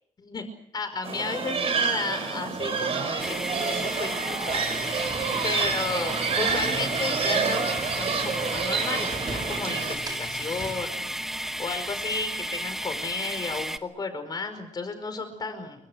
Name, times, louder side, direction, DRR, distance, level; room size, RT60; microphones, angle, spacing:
voice 1, 0.7-3.4 3.7-15.9, left 4 dB, 30° left, 9 dB, 5.1 m, -34 dB
sound 1, 1.0-10.0, right 5 dB, 50° right, 6.1 m, -28 dB
sound 2, 3.2-13.8, equal, 5° right, 1.2 m, -33 dB
sound 3, 4.5-10.8, right 1 dB, 30° right, 3.2 m, -41 dB
28.5 x 24.5 x 6.4 m, 0.70 s
wide cardioid pair, 180°, 13 cm